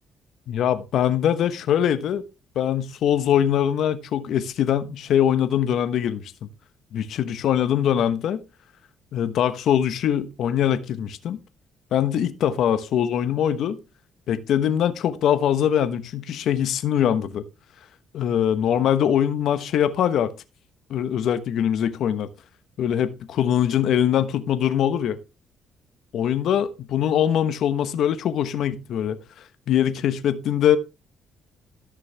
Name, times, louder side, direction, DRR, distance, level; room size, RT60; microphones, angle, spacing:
voice 1, 0.5-2.2 2.5-6.5 6.9-8.4 9.1-11.4 11.9-13.8 14.3-17.4 18.1-20.3 20.9-22.3 22.8-25.2 26.1-29.2 29.7-30.8, left 9 dB, 70° left, 1.1 m, -22 dB
13.5 x 6.3 x 3.4 m
cardioid pair, 90°, 0 cm